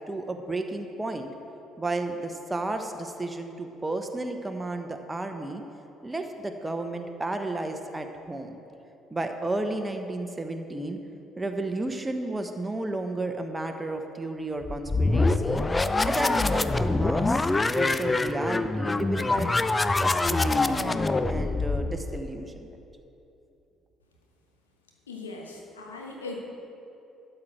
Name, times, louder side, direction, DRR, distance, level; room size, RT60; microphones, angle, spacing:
voice 1, 0.1-1.3 1.8-5.6 6.0-8.6 9.1-11.0 11.4-15.6 16.0-19.5 20.0-22.8, right 2 dB, 15° right, 5 dB, 1.0 m, -32 dB
sound 1, 14.6-22.3, left 3 dB, 20° left, 0.4 m, -25 dB
voice 2, 25.1-26.4, left 3 dB, 80° left, 0 dB, 1.2 m, -39 dB
12.5 x 7.9 x 4.7 m, 2.8 s
figure-of-eight pair, 50°, 0 cm